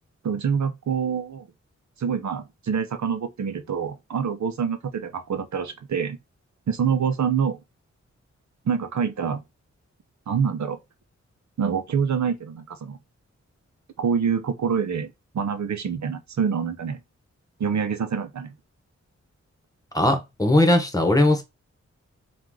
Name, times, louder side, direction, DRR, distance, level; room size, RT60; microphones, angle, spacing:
voice 1, 0.2-1.5 2.0-6.2 6.7-7.6 8.7-9.4 10.3-10.8 11.6-13.0 14.0-17.0 17.6-18.5, right 6 dB, 75° right, 0.7 m, -26 dB
voice 2, 19.9-21.4, left 1 dB, 10° left, 1.2 m, -19 dB
4.5 x 2.5 x 3.7 m
wide cardioid pair, 100°, 29 cm